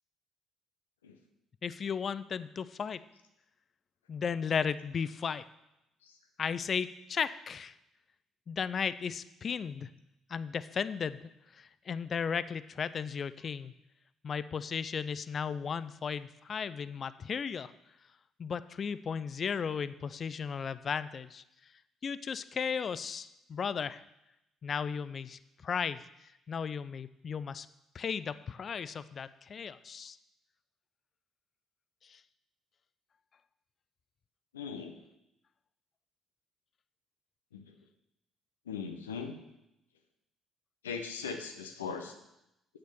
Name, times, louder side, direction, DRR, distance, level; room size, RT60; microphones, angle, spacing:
voice 1, 1.6-3.0 4.1-5.4 6.4-7.7 8.5-9.9 10.3-11.2 11.5-13.7 14.2-17.7 18.4-21.4 22.0-24.0 24.6-26.1 26.5-27.7 27.9-30.2 32.0-32.2, left 6 dB, 45° left, 16 dB, 0.5 m, -35 dB
voice 2, 34.5-35.0 37.5-37.7 38.7-39.4 40.8-42.1, left 5 dB, 85° left, 6 dB, 0.9 m, -39 dB
8.2 x 6.7 x 6.9 m, 0.85 s
figure-of-eight pair, 50°, 0 cm